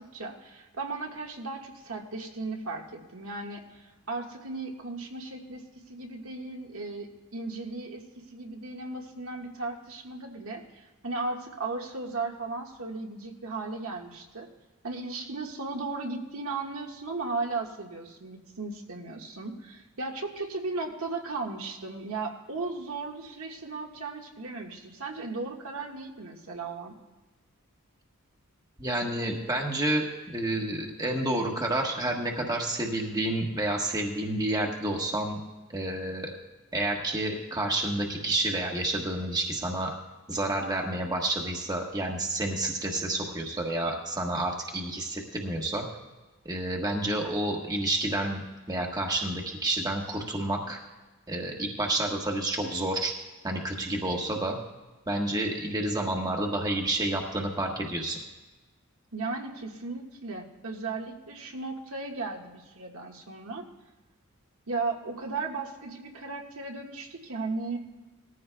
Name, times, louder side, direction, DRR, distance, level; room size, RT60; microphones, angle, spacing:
voice 1, 0.0-14.5 14.8-27.0 59.1-63.6 64.7-67.8, right 3 dB, 70° right, 0 dB, 1.6 m, -36 dB
voice 2, 28.8-35.4 35.7-36.3 36.7-39.9 40.3-45.9 46.4-50.8 51.3-53.1 53.4-54.6 55.1-58.2, right 1 dB, 15° right, 0 dB, 1.2 m, -29 dB
19.5 x 14.5 x 2.3 m, 1.2 s
head